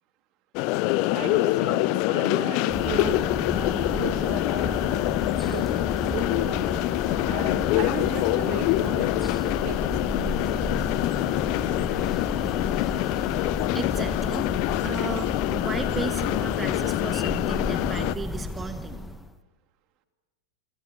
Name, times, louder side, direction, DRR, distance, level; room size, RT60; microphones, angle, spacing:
sound 1, 0.6-18.2, left 18 dB, 45° left, 0.8 m, -25 dB
voice 1, 1.1-5.1 5.4-5.7 6.0-6.7 7.2-10.8, right 9 dB, 40° right, 6 dB, 2.8 m, -37 dB
sound 2, 2.7-19.3, left 2 dB, 5° left, 1.3 m, -33 dB
voice 2, 13.7-14.5 14.8-19.0, right 4 dB, 15° right, 9 dB, 1.5 m, -34 dB
28.5 x 25.5 x 7.2 m, 1.3 s
figure-of-eight pair, 90°, 0 cm